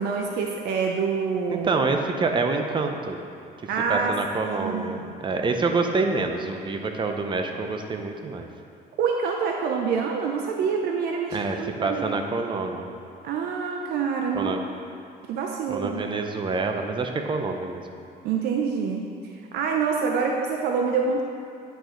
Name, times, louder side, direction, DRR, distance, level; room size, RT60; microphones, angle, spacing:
voice 1, 0.0-1.7 3.7-4.1 4.4-5.1 9.0-12.1 13.2-14.6 15.3-16.0 18.2-21.2, right 5 dB, 75° right, 2 dB, 0.6 m, -26 dB
voice 2, 1.5-3.2 3.9-8.5 11.3-12.9 14.3-14.6 15.7-17.8, right 3 dB, 30° right, 4 dB, 0.7 m, -27 dB
10.0 x 5.0 x 3.8 m, 2.5 s
cardioid pair, 110°, 17 cm